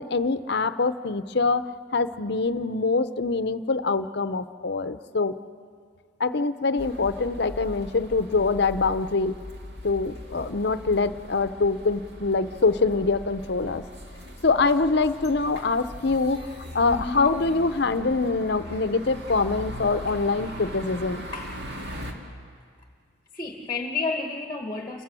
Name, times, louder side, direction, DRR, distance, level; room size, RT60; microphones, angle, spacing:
voice 1, 0.0-1.6 1.9-5.3 6.2-9.3 9.8-13.8 14.4-16.4 16.7-21.3, left 3 dB, 55° left, 12 dB, 0.7 m, -24 dB
sound 1, 6.8-22.1, equal, 55° right, 2.2 m, -40 dB
voice 2, 16.9-17.2 20.1-20.2 20.4-20.6 21.3-22.1 23.3-25.0, left 3 dB, 20° left, 4 dB, 1.2 m, -32 dB
29.0 x 16.0 x 7.6 m, 2.2 s
head